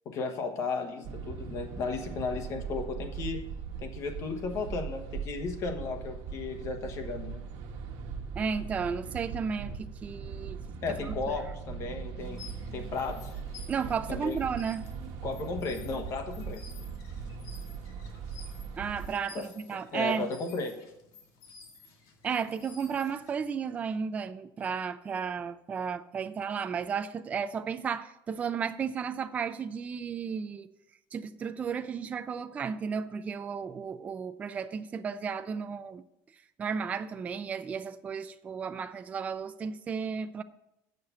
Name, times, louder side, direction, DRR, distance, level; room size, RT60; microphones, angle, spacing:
voice 1, 0.0-3.4 3.8-7.4 10.8-12.4 12.7-13.3 14.1-14.4 15.2-16.6 19.3-19.4 19.7-20.7, left 4 dB, 40° left, 1.2 m, -34 dB
sound 1, 1.0-19.1, right 6 dB, 70° right, 1.3 m, -40 dB
voice 2, 8.4-10.6 11.1-11.2 13.7-14.8 18.8-20.3 22.2-30.7 31.1-36.0 36.6-40.4, right 6 dB, 20° right, 0.3 m, -33 dB
sound 2, 12.2-23.5, left 5 dB, 60° left, 1.9 m, -54 dB
7.5 x 6.6 x 6.9 m
cardioid pair, 170°, 8 cm